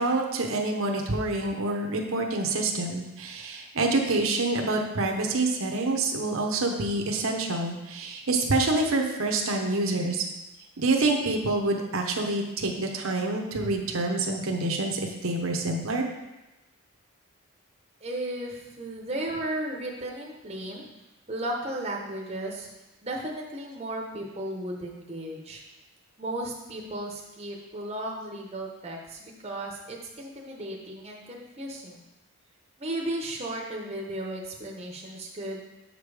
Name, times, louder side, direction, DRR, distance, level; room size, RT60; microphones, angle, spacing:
voice 1, 0.0-10.2 10.8-16.1, right 2 dB, 70° right, 1 dB, 0.9 m, -27 dB
voice 2, 18.0-20.8 21.3-22.7 23.0-25.6 26.2-32.0 32.8-35.6, right 1 dB, 25° right, -1 dB, 0.8 m, -35 dB
7.4 x 5.2 x 4.8 m, 1.0 s
head